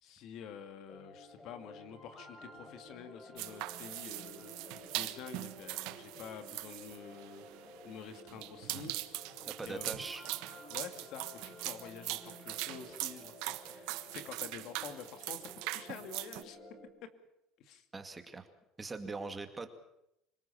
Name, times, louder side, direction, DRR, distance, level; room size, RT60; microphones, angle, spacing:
voice 1, 0.0-9.0 9.6-10.1 10.7-16.6 17.6-17.8, left 7 dB, 60° left, 9 dB, 2.4 m, -48 dB
sound 1, 0.9-16.9, left 1 dB, 25° left, 4.8 m, -53 dB
sound 2, 3.4-16.4, right 19 dB, 75° right, 1.3 m, -41 dB
voice 2, 9.4-10.2 17.9-18.5 18.8-19.7, right 3 dB, 15° right, 7 dB, 2.2 m, -41 dB
26.5 x 19.0 x 7.1 m, 0.82 s
cardioid pair, 130°, 0 cm